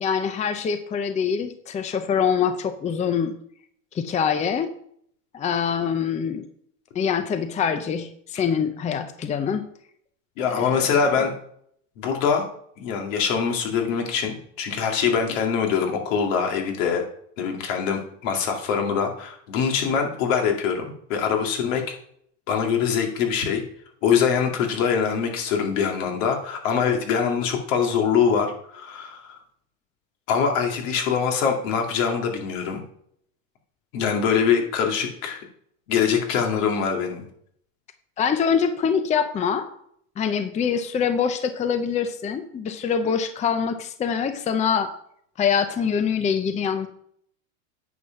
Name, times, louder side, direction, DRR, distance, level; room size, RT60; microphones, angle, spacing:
voice 1, 0.0-3.3 3.9-4.7 5.3-6.5 6.9-9.7 10.4-11.0 38.2-39.7 40.2-44.9 45.4-46.9, left 7 dB, 20° left, 10 dB, 0.6 m, -24 dB
voice 2, 10.4-11.3 12.0-12.4 12.8-17.0 17.4-20.8 21.1-21.8 22.5-23.6 24.0-29.4 30.3-32.8 33.9-35.4 35.9-37.3, left 6 dB, 75° left, 2 dB, 2.4 m, -23 dB
9.5 x 5.4 x 5.9 m, 0.66 s
supercardioid pair, 120°, 39 cm